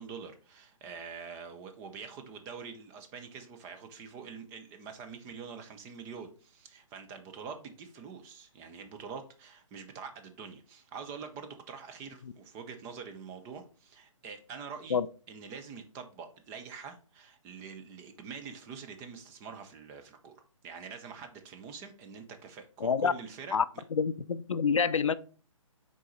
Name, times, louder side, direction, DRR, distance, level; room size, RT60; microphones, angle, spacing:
voice 1, 0.0-15.0 15.3-23.6, right 6 dB, 15° right, 0.5 m, -45 dB
voice 2, 22.8-23.1 23.5-23.7 23.9-25.1, left 6 dB, 65° left, 0.4 m, -27 dB
6.2 x 4.0 x 3.9 m
figure-of-eight pair, 135°, 18 cm